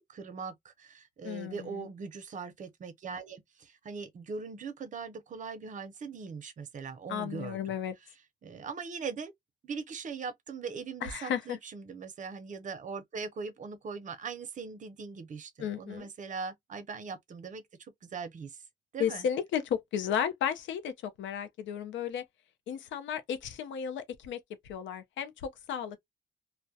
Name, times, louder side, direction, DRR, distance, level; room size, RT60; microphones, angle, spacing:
voice 1, 0.1-7.7 8.4-9.3 9.6-18.6 18.9-19.3, right 5 dB, 40° right, 0.6 m, -40 dB
voice 2, 1.2-1.9 7.1-7.9 11.0-11.6 15.6-16.1 19.0-22.2 22.7-26.0, left 8 dB, 70° left, 0.6 m, -34 dB
2.2 x 2.1 x 2.6 m
cardioid pair, 90°, 20 cm